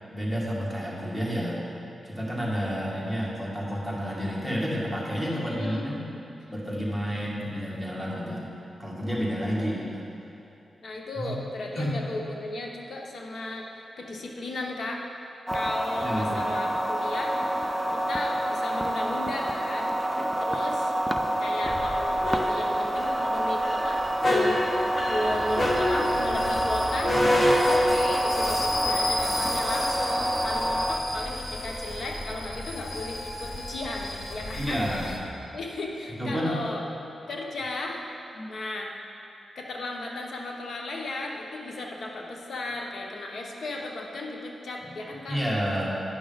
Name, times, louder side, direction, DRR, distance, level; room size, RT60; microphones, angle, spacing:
voice 1, 0.1-1.6 2.0-6.0 6.5-8.5 8.8-10.0 11.2-11.3 11.8-12.0 16.0-16.4 21.2-21.3 34.5-35.1 36.2-36.6 38.4-38.5 44.8-44.9 45.3-45.9, equal, 5° left, -5 dB, 2.0 m, -30 dB
voice 2, 5.3-6.2 10.8-13.7 14.0-15.0 15.5-17.3 17.9-19.9 20.4-20.9 21.4-24.6 25.1-35.2 35.5-36.8 37.3-38.0 38.5-38.9 39.5-45.4, left 2 dB, 70° left, 0 dB, 1.1 m, -35 dB
sound 1, 15.5-31.0, right 1 dB, 10° right, 0.4 m, -28 dB
sound 2, 21.7-35.2, left 1 dB, 35° left, 1.1 m, -29 dB
9.9 x 5.9 x 4.0 m, 2.8 s
cardioid pair, 65°, 0 cm